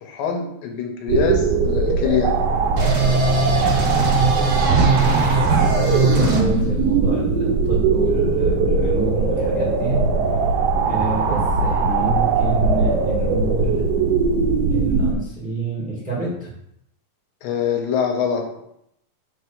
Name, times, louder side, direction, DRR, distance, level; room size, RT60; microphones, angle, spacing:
voice 1, 0.0-2.3 17.4-18.6, left 7 dB, 85° left, 3 dB, 2.6 m, -24 dB
sound 1, 1.1-15.1, right 4 dB, 75° right, 1.5 m, -20 dB
sound 2, 2.8-6.4, right 3 dB, 55° right, 1.9 m, -21 dB
voice 2, 4.1-10.0 10.8-13.8 14.7-16.5, right 2 dB, 5° right, -6 dB, 0.6 m, -28 dB
5.4 x 3.3 x 5.5 m, 0.77 s
omnidirectional pair, 4.0 m